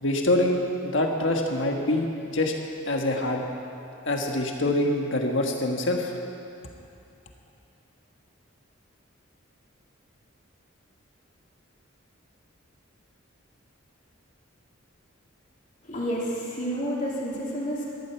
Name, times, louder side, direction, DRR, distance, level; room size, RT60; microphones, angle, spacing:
voice 1, 0.0-2.5 2.9-3.4 4.0-6.1, left 1 dB, 65° left, 2 dB, 1.5 m, -25 dB
voice 2, 15.8-17.8, equal, 40° left, -5 dB, 3.2 m, -30 dB
14.0 x 12.5 x 7.1 m, 2.7 s
head